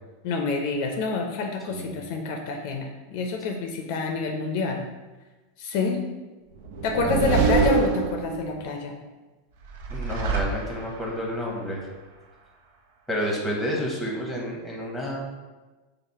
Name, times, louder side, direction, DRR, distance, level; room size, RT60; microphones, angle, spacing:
voice 1, 0.2-4.8 5.6-6.0 6.8-8.9, left 3 dB, 60° left, 3 dB, 0.5 m, -27 dB
sound 1, 6.6-8.6 9.6-11.1, right 4 dB, 75° right, 0.5 m, -25 dB
voice 2, 9.9-11.8 13.1-15.2, equal, 5° left, -3 dB, 1.0 m, -30 dB
4.8 x 2.0 x 4.1 m, 1.2 s
supercardioid pair, 135°, 0 cm